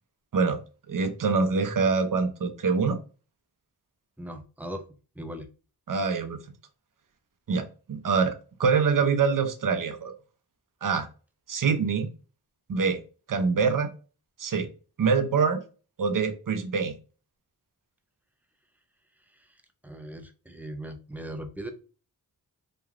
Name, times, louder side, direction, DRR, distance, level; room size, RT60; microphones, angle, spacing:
voice 1, 0.9-3.0 5.9-6.4 7.5-10.1 10.8-11.1 11.5-12.1 12.7-13.0 13.3-13.9 14.4-14.7 15.0-15.6 16.0-16.9, right 5 dB, 50° right, 0.6 m, -25 dB
voice 2, 4.2-4.8 5.2-5.5 19.8-21.7, right 1 dB, 5° right, 0.4 m, -38 dB
2.9 x 2.2 x 2.4 m
cardioid pair, 45°, 41 cm